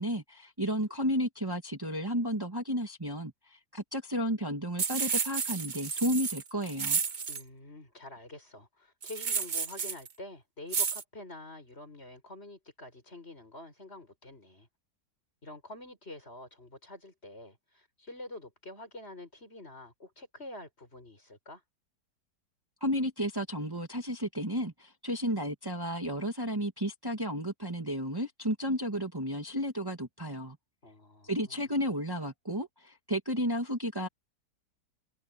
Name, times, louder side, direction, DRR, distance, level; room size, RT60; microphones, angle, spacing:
voice 1, 0.0-7.0 22.8-30.6 31.2-34.1, equal, 15° right, 2.1 m, -32 dB
sound 1, 4.8-7.4 9.0-10.1 10.7-11.0, right 6 dB, 35° right, 0.8 m, -31 dB
voice 2, 7.3-14.7 15.4-21.6 30.8-31.6, left 2 dB, 35° left, 6.5 m, -47 dB
omnidirectional pair, 1.8 m